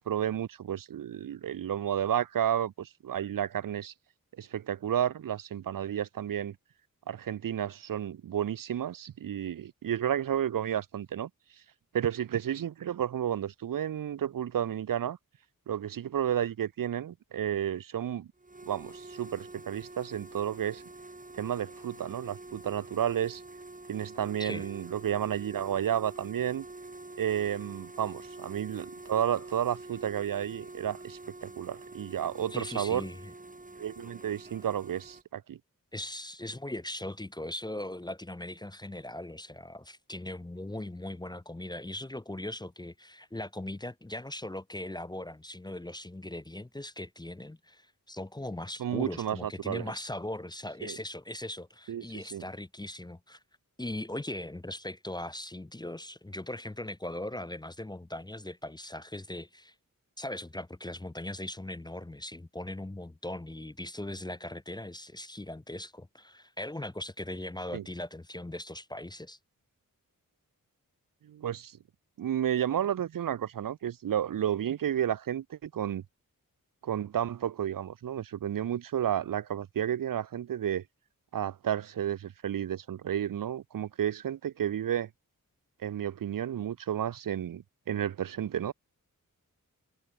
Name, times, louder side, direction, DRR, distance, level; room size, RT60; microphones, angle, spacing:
voice 1, 0.0-3.9 4.4-6.6 7.1-11.3 11.9-15.2 15.7-18.3 18.7-20.8 21.3-23.4 23.9-26.7 27.2-33.1 33.8-35.6 48.8-49.8 50.8-51.0 51.9-52.1 52.3-52.4 67.7-67.8 71.2-71.8 72.2-76.0 76.8-80.8 81.3-85.1 85.8-88.7, right 10 dB, 70° right, 0.5 m, -32 dB
sound 1, 18.4-35.2, right 2 dB, 25° right, 1.8 m, -47 dB
voice 2, 32.5-33.3 35.9-53.4 53.8-59.7 60.2-69.4, left 1 dB, 10° left, 0.6 m, -39 dB
wide cardioid pair, 75°, 35 cm